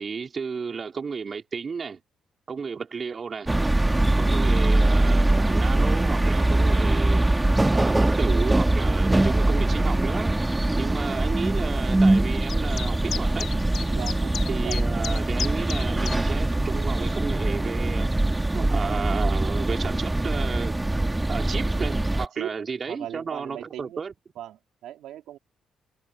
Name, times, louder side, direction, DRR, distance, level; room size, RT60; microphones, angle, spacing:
voice 1, 0.0-2.0 2.5-3.5 4.2-7.2 7.7-13.5 14.5-18.1 18.5-20.8 21.3-24.1, right 5 dB, 40° right, 3.4 m, -33 dB
sound 1, 3.5-22.2, right 2 dB, 15° right, 1.7 m, -22 dB
sound 2, 12.5-16.2, left 8 dB, 60° left, 2.9 m, -34 dB
voice 2, 13.9-14.8 22.4-22.5 22.9-24.0 24.4-25.4, right 12 dB, 85° right, 3.9 m, -38 dB
cardioid pair, 90°, 0 cm